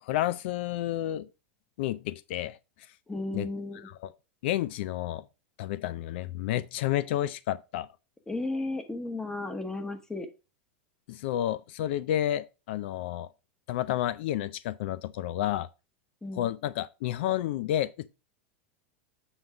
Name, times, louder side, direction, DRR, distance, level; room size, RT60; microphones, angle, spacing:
voice 1, 0.0-1.3 1.8-2.6 3.3-3.5 4.4-5.2 5.6-7.9 11.1-13.3 13.7-15.7 16.4-18.1, left 13 dB, 70° left, 0.4 m, -30 dB
voice 2, 3.1-3.9 8.3-10.3 16.2-16.5, left 2 dB, 10° left, 1.1 m, -34 dB
7.9 x 3.9 x 4.7 m
supercardioid pair, 135°, 6 cm